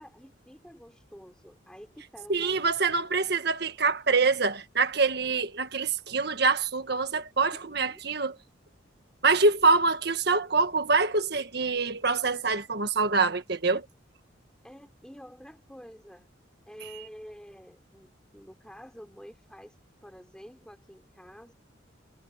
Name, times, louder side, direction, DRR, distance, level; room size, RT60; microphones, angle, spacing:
voice 1, 0.0-2.7 7.5-8.0 14.6-16.3 16.7-21.5, equal, 5° left, 5.3 m, -49 dB
voice 2, 2.3-8.3 9.2-13.9, right 4 dB, 55° right, 1.7 m, -25 dB
head